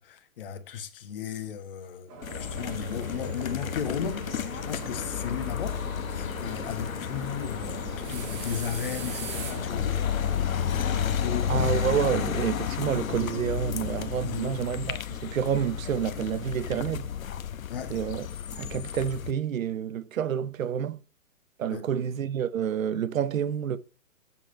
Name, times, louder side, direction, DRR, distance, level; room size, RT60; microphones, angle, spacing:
voice 1, 0.0-4.3 4.5-5.8 6.1-10.1 10.7-11.7 14.2-14.6 17.7-18.0 21.7-21.8, left 8 dB, 40° left, 1.3 m, -35 dB
sound 1, 2.1-12.3, right 5 dB, 20° right, 1.5 m, -40 dB
sound 2, 2.2-19.3, left 9 dB, 75° left, 0.9 m, -32 dB
voice 2, 11.5-17.1 17.9-18.3 18.5-21.0 21.6-23.8, right 8 dB, 70° right, 0.9 m, -29 dB
7.5 x 6.2 x 4.5 m
hypercardioid pair, 160°, 42 cm